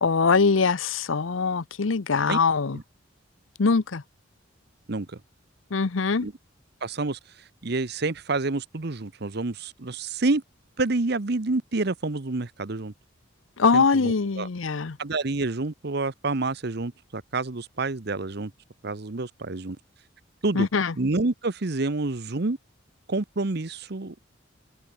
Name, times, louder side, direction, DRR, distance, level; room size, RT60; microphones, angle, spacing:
voice 1, 0.0-2.8 3.6-4.0 5.7-6.3 13.6-15.0 20.5-20.9, left 4 dB, 80° left, 0.8 m, -22 dB
voice 2, 6.8-7.2 7.6-10.4 10.8-12.9 13.7-14.5 15.0-18.5 18.8-19.8 20.4-20.7 21.0-22.6 23.1-24.1, right 3 dB, 55° right, 1.0 m, -28 dB
head